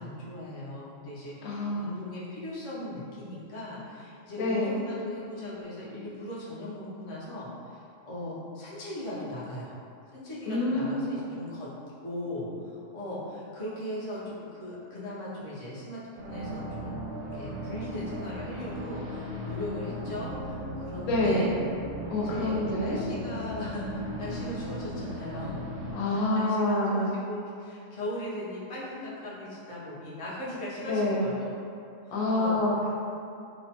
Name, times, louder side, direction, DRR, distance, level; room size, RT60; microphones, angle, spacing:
voice 1, 0.0-9.8 10.1-11.7 12.0-21.5 22.1-25.6 26.1-31.5 32.1-32.6, left 1 dB, 50° left, -8 dB, 0.3 m, -38 dB
voice 2, 1.4-1.9 4.4-4.8 10.4-11.3 21.1-21.5 22.1-23.0 25.9-27.1 30.9-31.3 32.1-32.9, left 1 dB, 80° left, -4 dB, 1.0 m, -27 dB
sound 1, 16.2-25.9, equal, 80° right, 1.0 m, -37 dB
2.9 x 2.1 x 2.8 m, 2.6 s
omnidirectional pair, 1.4 m